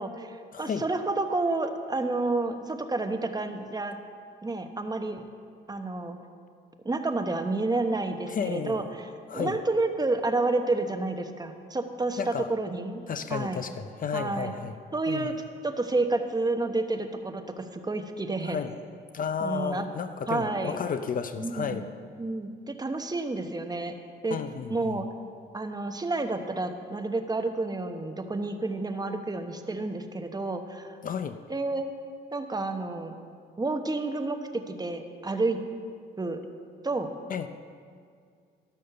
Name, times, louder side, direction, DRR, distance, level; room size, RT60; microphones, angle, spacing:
voice 1, 0.0-4.0 4.4-5.2 5.7-6.2 6.8-13.0 13.3-13.7 14.1-14.5 14.9-15.3 15.6-18.6 19.4-19.9 20.3-20.8 21.4-21.9 22.2-23.9 24.2-24.4 24.7-25.1 25.5-31.0 31.5-31.9 32.3-33.1 33.6-35.6 36.2-36.4 36.8-37.1, right 2 dB, 20° right, 6 dB, 1.0 m, -30 dB
voice 2, 0.5-0.8 8.3-8.8 9.3-9.6 12.2-12.5 13.1-14.7 15.1-15.3 18.5-18.7 19.1-21.8 24.3-25.0 31.0-31.4 37.3-37.5, left 6 dB, 45° left, 10 dB, 0.5 m, -32 dB
12.5 x 6.4 x 6.7 m, 2.2 s
cardioid pair, 90°, 20 cm